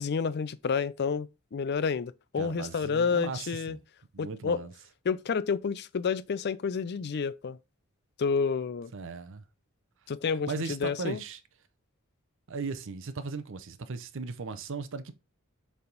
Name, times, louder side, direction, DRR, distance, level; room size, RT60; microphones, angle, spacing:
voice 1, 0.0-3.8 4.2-4.6 5.1-7.6 8.2-8.9 10.1-11.2, left 5 dB, 50° left, 0.4 m, -30 dB
voice 2, 2.4-3.8 4.1-4.7 8.9-9.4 10.5-11.4 12.5-15.1, right 4 dB, 65° right, 0.6 m, -37 dB
6.9 x 3.5 x 3.9 m
head